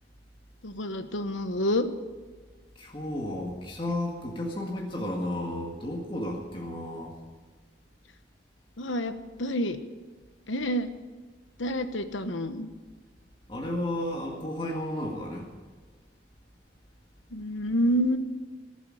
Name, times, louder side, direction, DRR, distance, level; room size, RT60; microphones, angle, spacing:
voice 1, 0.6-1.9 8.8-9.8 10.5-10.9 11.6-12.7 17.3-18.2, equal, 85° left, 9 dB, 1.1 m, -28 dB
voice 2, 2.8-7.1 13.5-15.5, left 1 dB, 25° left, -1 dB, 2.0 m, -33 dB
18.5 x 8.2 x 8.9 m, 1.4 s
head